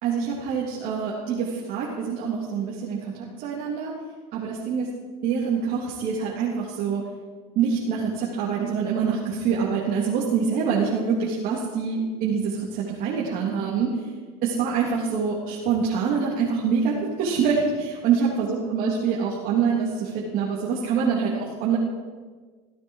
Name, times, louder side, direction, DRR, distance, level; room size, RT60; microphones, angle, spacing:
voice 1, 0.0-3.9 4.3-4.9 5.2-7.0 7.6-13.9 14.4-21.8, right 6 dB, 50° right, -5 dB, 3.4 m, -25 dB
16.5 x 16.5 x 4.9 m, 1.5 s
cardioid pair, 140°, 18 cm